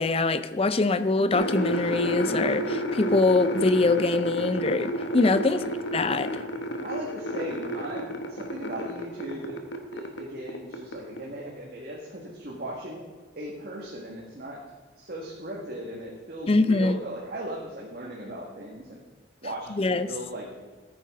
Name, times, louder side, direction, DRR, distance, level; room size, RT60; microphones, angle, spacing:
voice 1, 0.0-5.6 5.9-6.3 16.5-17.0 19.8-20.1, left 3 dB, 30° left, 12 dB, 0.5 m, -23 dB
sound 1, 1.3-10.2 10.5-11.2, right 1 dB, 70° left, 1.2 m, -31 dB
voice 2, 5.3-5.7 6.8-9.6 9.9-13.0 13.4-14.6 15.0-19.0 19.4-20.6, right 1 dB, 55° right, -3 dB, 1.7 m, -37 dB
14.5 x 9.4 x 3.7 m, 1.4 s
head